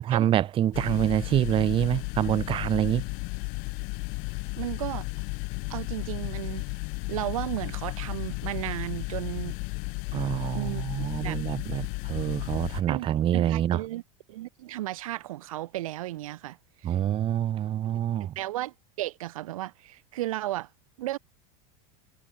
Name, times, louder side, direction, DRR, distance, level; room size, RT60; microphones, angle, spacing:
voice 1, 0.0-3.0 10.1-13.8 16.8-18.3, right 11 dB, 30° right, 1.1 m, -26 dB
sound 1, 0.7-12.8, left 32 dB, 55° left, 0.5 m, -34 dB
voice 2, 4.6-5.1 5.7-6.6 7.1-9.6 10.5-11.4 12.9-14.0 14.3-16.6 16.8-17.0 18.4-20.7 21.0-21.2, right 15 dB, 90° right, 2.3 m, -34 dB
supercardioid pair, 135°, 17 cm